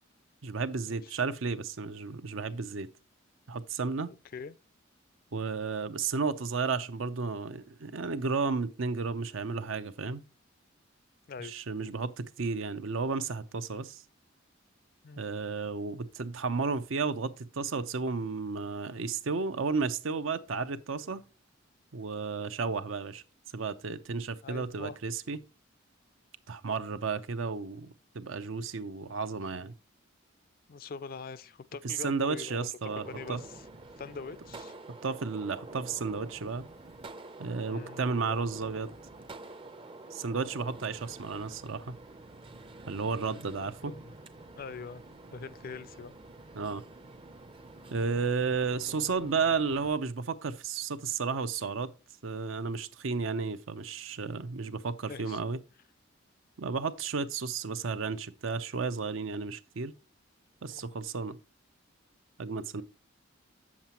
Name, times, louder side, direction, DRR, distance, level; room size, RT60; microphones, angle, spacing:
voice 1, 0.4-2.9 3.5-4.1 5.3-10.2 11.4-14.0 15.2-21.2 21.9-23.2 23.5-25.4 26.5-29.7 31.8-33.4 35.0-36.7 37.4-38.9 40.1-42.0 42.9-44.0 46.5-46.8 47.9-51.9 52.2-55.6 56.6-60.0 60.6-61.4 62.4-62.8, right 4 dB, 80° right, 0.7 m, -33 dB
voice 2, 24.4-25.0 30.7-32.7 33.0-33.6 34.0-34.7 37.7-38.0 43.8-44.1 44.5-45.0 45.3-46.1 48.9-49.3 55.1-55.4 60.7-61.0, left 5 dB, 45° left, 0.4 m, -43 dB
Gunshot gunfire, 32.9-49.9, right 2 dB, 25° right, 0.5 m, -48 dB
8.1 x 7.3 x 2.9 m
head